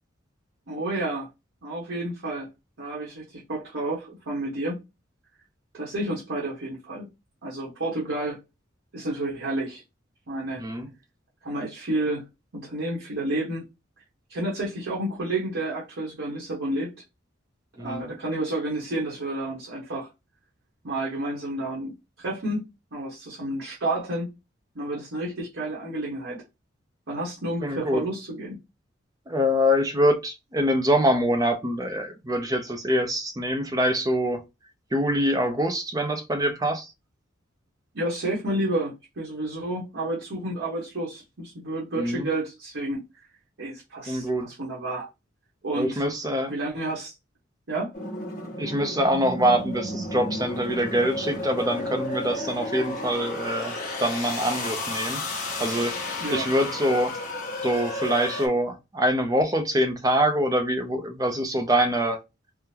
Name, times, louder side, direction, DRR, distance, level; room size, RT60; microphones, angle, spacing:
voice 1, 0.7-1.3 1.6-2.5 2.8-4.8 5.7-7.1 7.4-8.4 8.9-9.8 10.3-10.6 11.4-12.2 12.5-13.7 14.3-16.9 17.8-20.1 20.8-24.3 24.7-26.4 27.1-28.6 37.9-43.0 43.6-45.1 45.6-46.0 46.5-47.1 47.7-47.9 56.2-56.5, right 1 dB, 75° right, 1.1 m, -30 dB
voice 2, 17.8-18.1 27.6-28.0 29.3-34.4 34.9-36.9 42.0-42.3 44.1-44.5 45.8-46.5 48.6-57.2 57.6-62.2, equal, 20° right, 0.5 m, -25 dB
sound 1, 47.9-58.5, left 2 dB, 45° left, 1.1 m, -32 dB
3.7 x 2.1 x 2.8 m
head